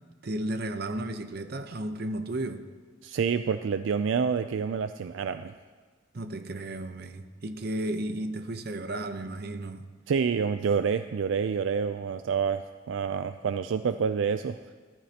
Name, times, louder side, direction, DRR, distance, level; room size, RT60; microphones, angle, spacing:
voice 1, 0.2-2.6 6.1-9.9, right 1 dB, 50° right, 0.8 m, -33 dB
voice 2, 3.0-5.5 10.1-14.6, right 6 dB, 70° right, 0.4 m, -28 dB
18.5 x 13.5 x 2.9 m
head